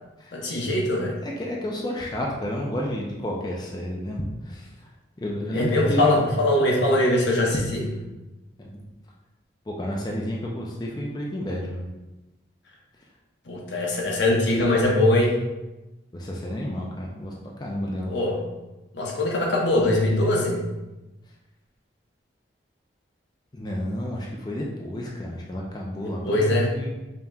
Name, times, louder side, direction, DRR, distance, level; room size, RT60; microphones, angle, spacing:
voice 1, 0.3-1.1 5.5-7.8 13.5-15.4 18.1-18.4 18.9-20.6 26.0-26.7, left 1 dB, 80° left, -1 dB, 0.8 m, -22 dB
voice 2, 1.2-4.9 5.2-6.3 7.5-7.6 8.6-8.9 9.7-11.9 16.1-17.3 17.6-18.2 23.5-26.9, equal, 20° left, -2 dB, 0.4 m, -31 dB
5.3 x 2.9 x 2.3 m, 1.0 s
head